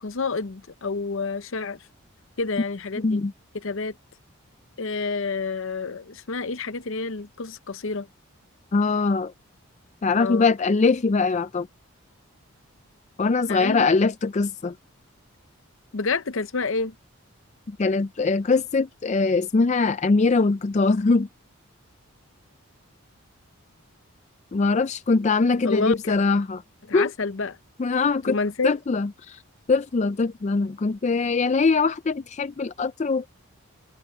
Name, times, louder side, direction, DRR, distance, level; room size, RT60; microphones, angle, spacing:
voice 1, 0.0-1.8 2.4-3.2 3.5-3.9 4.8-8.1 10.1-10.5 13.5-13.8 15.9-16.9 25.6-26.1 26.9-27.6 28.3-28.8, left 4 dB, 60° left, 0.7 m, -29 dB
voice 2, 8.7-9.3 10.0-11.7 13.2-14.8 17.7-21.3 24.5-26.6 26.9-27.1 27.8-28.4 28.6-29.4 29.7-33.3, left 4 dB, 30° left, 0.4 m, -22 dB
open air
head